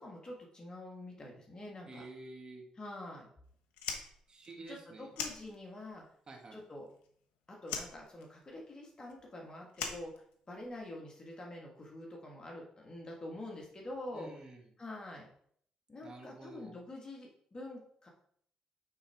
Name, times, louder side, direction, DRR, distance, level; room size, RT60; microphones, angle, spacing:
voice 1, 0.0-2.1 2.7-3.3 4.7-6.0 6.5-6.9 7.5-10.1 10.5-14.3 14.8-15.3 15.9-18.1, left 1 dB, 35° left, -1 dB, 1.7 m, -46 dB
voice 2, 1.9-2.6 4.3-5.1 6.3-6.6 14.1-14.6 16.0-16.7, right 2 dB, 40° right, 0 dB, 2.0 m, -49 dB
Fire, 3.7-6.0 6.3-7.3 7.6-10.8, left 6 dB, 85° left, 1.0 m, -42 dB
8.6 x 4.1 x 3.6 m, 0.63 s
supercardioid pair, 55°, 2 cm